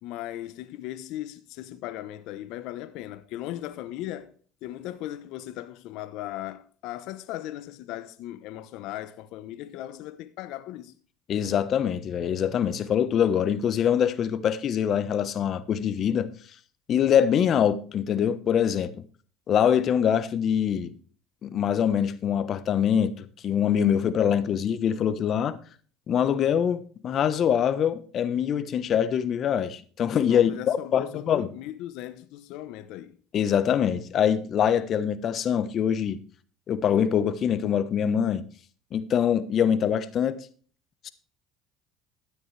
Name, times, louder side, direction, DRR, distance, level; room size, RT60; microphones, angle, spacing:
voice 1, 0.0-4.3 4.6-10.9 30.3-33.1, left 14 dB, 70° left, 0.9 m, -37 dB
voice 2, 11.3-16.3 16.9-18.9 19.5-20.9 21.4-25.6 26.1-31.5 33.3-36.2 36.7-38.4 38.9-40.4 41.0-41.1, left 8 dB, 50° left, 1.1 m, -24 dB
13.0 x 9.4 x 3.3 m
supercardioid pair, 85°, 0 cm